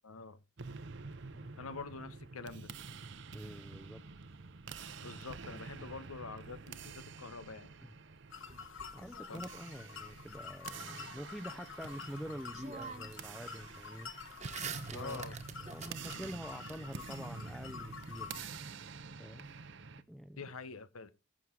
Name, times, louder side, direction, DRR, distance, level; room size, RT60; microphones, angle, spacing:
voice 1, 0.0-0.4 1.6-2.7 5.0-7.7 9.3-9.4 14.9-15.4 20.4-21.1, left 4 dB, 85° left, 0.9 m, -46 dB
sound 1, 0.6-20.0, right 4 dB, 55° right, 0.7 m, -48 dB
voice 2, 3.3-4.0 7.8-7.9 8.9-14.1 14.9-15.2 15.7-18.4 19.2-19.5 20.1-20.5, equal, ahead, 0.5 m, -46 dB
sound 2, 8.3-18.6, left 6 dB, 65° left, 1.2 m, -49 dB
sound 3, 8.5-9.8 12.0-12.1 12.5-13.3 13.6-16.8, right 6 dB, 30° right, 1.2 m, -47 dB
15.0 x 6.2 x 3.8 m
head